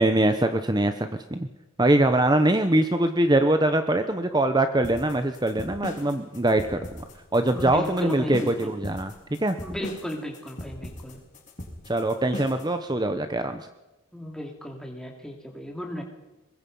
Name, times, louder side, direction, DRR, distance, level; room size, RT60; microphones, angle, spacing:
voice 1, 0.0-1.5 1.8-6.8 7.3-9.1 9.4-9.6 11.9-13.7, right 1 dB, 20° right, 8 dB, 0.9 m, -23 dB
sound 1, 4.8-12.7, left 1 dB, 35° left, 3.9 m, -39 dB
voice 2, 7.5-8.7 9.6-11.2 14.1-16.0, equal, 5° left, 1 dB, 2.8 m, -35 dB
24.0 x 20.5 x 5.5 m, 1.0 s
head